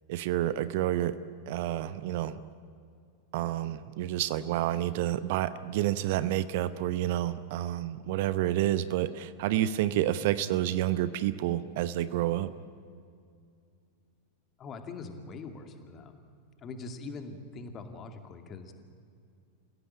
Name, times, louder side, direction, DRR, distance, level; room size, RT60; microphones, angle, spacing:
voice 1, 0.1-1.1 1.5-2.4 3.3-12.5, right 13 dB, 50° right, 15 dB, 0.8 m, -29 dB
voice 2, 14.6-16.2 16.6-18.7, left 3 dB, 30° left, 6 dB, 2.5 m, -42 dB
28.5 x 16.5 x 8.8 m, 2.3 s
figure-of-eight pair, 90°, 0 cm